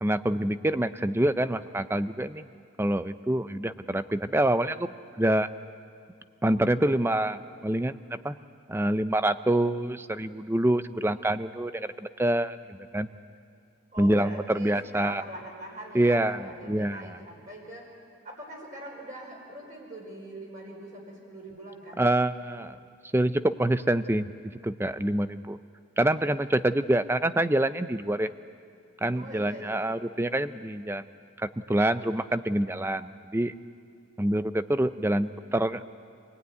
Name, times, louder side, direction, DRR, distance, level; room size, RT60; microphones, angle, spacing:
voice 1, 0.0-2.5 2.8-4.9 5.2-5.5 6.4-8.3 8.7-13.1 14.0-15.2 15.9-17.2 22.0-22.8 23.1-24.3 24.6-25.6 26.0-28.3 29.0-31.0 31.4-33.5 34.2-35.8, right 1 dB, 10° right, 12 dB, 0.5 m, -26 dB
voice 2, 13.9-18.0 18.2-22.0 29.1-29.7 30.0-30.1, right 1 dB, 40° right, -3 dB, 4.8 m, -42 dB
26.0 x 18.5 x 9.4 m, 2.4 s
head